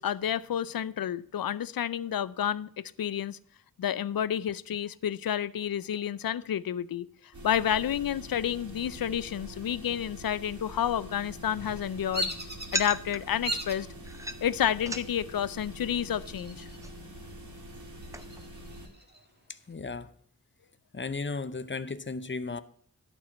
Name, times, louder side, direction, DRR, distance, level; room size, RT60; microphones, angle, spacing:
voice 1, 0.0-3.4 3.8-7.1 7.4-12.3 12.7-13.9 14.4-16.7, left 10 dB, 75° left, 18 dB, 0.5 m, -30 dB
sound 1, 7.3-18.9, equal, 55° right, 2.5 m, -45 dB
sound 2, 11.2-18.5, right 1 dB, 10° right, 0.7 m, -42 dB
Bird vocalization bird call bird song, 12.1-12.9 13.4-13.9 14.4-14.9 16.1-16.9 17.2-17.3 17.8-19.2, equal, 30° right, 1.6 m, -36 dB
voice 2, 19.5-20.1 20.9-22.6, left 4 dB, 35° left, 13 dB, 0.6 m, -35 dB
11.5 x 4.5 x 7.0 m, 0.62 s
wide cardioid pair, 55°, 35 cm